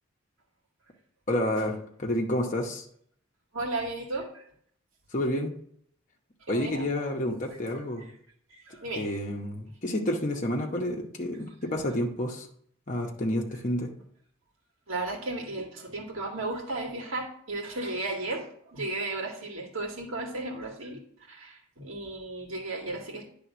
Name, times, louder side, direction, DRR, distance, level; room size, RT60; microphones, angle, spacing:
voice 1, 1.3-2.8 5.1-5.5 6.5-8.0 8.9-12.5 12.9-13.9, left 1 dB, 40° left, 0 dB, 0.9 m, -29 dB
voice 2, 3.5-4.4 6.5-6.9 7.7-8.1 8.5-9.1 11.8-11.9 14.9-21.0 21.3-23.3, right 2 dB, 80° right, 0 dB, 2.0 m, -35 dB
9.7 x 3.5 x 6.0 m, 0.65 s
head